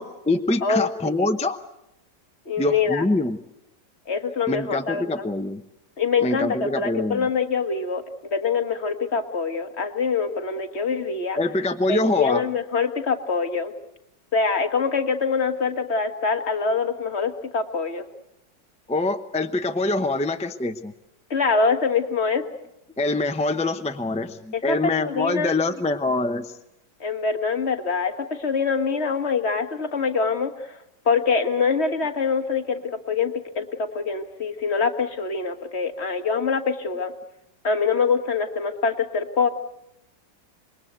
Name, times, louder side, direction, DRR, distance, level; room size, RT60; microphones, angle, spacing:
voice 1, 0.0-1.6 2.6-3.4 4.5-5.6 6.2-7.3 11.4-12.4 18.9-20.9 23.0-26.5, left 2 dB, 10° left, 7 dB, 0.3 m, -24 dB
voice 2, 0.6-1.3 2.4-3.1 4.1-5.3 6.0-11.4 11.9-13.7 14.3-18.0 21.3-22.4 24.5-25.6 27.0-30.8 31.0-32.8 33.1-37.1 37.6-39.5, left 5 dB, 40° left, 7 dB, 1.6 m, -24 dB
26.5 x 21.5 x 8.0 m, 0.84 s
omnidirectional pair, 1.9 m